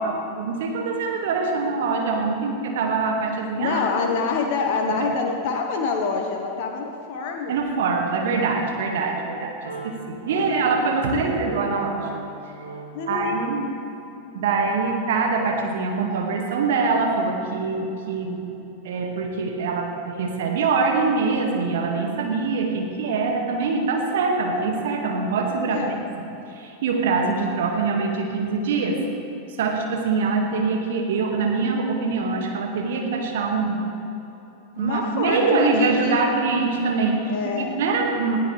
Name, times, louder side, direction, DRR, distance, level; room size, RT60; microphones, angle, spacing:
voice 1, 0.0-3.8 4.9-5.0 7.5-9.6 9.8-12.1 13.1-13.6 14.3-18.4 18.8-26.0 26.5-29.0 29.6-33.8 34.8-38.4, right 4 dB, 55° right, 1 dB, 2.1 m, -24 dB
voice 2, 3.6-7.6 10.3-10.6 11.0-11.3 12.9-13.4 25.6-26.0 34.8-36.3 37.2-37.8, left 5 dB, 50° left, 2 dB, 1.3 m, -26 dB
Wind instrument woodwind instrument, 9.6-13.7, right 3 dB, 75° right, 3.5 m, -40 dB
20.0 x 15.0 x 3.5 m, 3.0 s
figure-of-eight pair, 90°, 0 cm